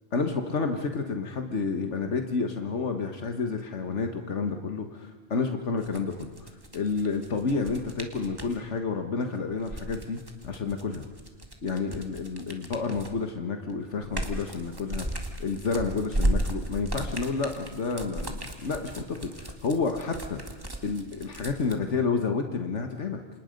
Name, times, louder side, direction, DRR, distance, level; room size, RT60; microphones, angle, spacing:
voice 1, 0.1-11.0 11.6-20.4 20.8-23.2, left 4 dB, 80° left, 5 dB, 1.8 m, -30 dB
sound 1, 5.8-8.6 9.5-13.3 13.7-21.8, right 1 dB, 20° right, 2.1 m, -34 dB
29.0 x 26.5 x 5.3 m, 1.3 s
omnidirectional pair, 1.2 m